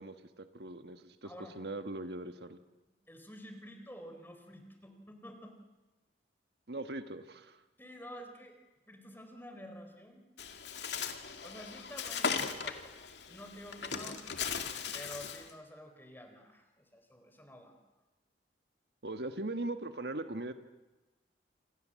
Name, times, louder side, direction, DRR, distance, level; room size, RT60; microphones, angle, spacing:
voice 1, 0.0-2.6 6.7-7.6 19.0-20.5, right 2 dB, 65° right, 8 dB, 1.5 m, -40 dB
voice 2, 1.2-1.6 3.1-5.6 7.8-8.6 8.9-10.2 11.4-12.8 13.3-14.2 14.9-17.8, equal, 10° left, 6 dB, 4.0 m, -49 dB
Bird, 10.4-15.5, left 6 dB, 80° left, 2.3 m, -38 dB
28.0 x 27.0 x 7.6 m, 1.1 s
head